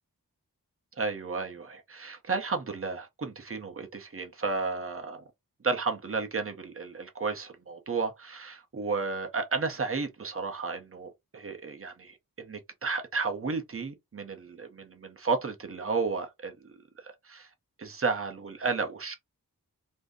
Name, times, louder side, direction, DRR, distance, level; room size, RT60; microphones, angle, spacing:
voice 1, 1.0-5.2 5.6-17.5 17.8-19.2, right 4 dB, 40° right, 0.8 m, -33 dB
2.6 x 2.1 x 3.5 m
wide cardioid pair, 105°, 36 cm